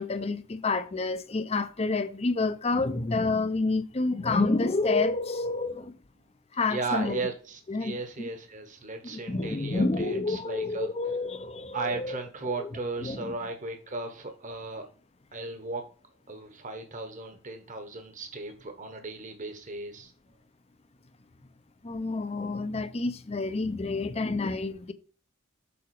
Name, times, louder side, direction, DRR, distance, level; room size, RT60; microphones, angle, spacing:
voice 1, 0.0-5.9 6.5-7.3 7.7-8.0 9.0-12.2 12.6-12.7 13.0-13.3 21.8-24.9, left 3 dB, 30° left, 0.6 m, -29 dB
voice 2, 6.7-10.9 11.7-14.8 15.3-15.8 16.3-20.1, right 3 dB, 35° right, 1.2 m, -36 dB
7.1 x 4.8 x 4.7 m
head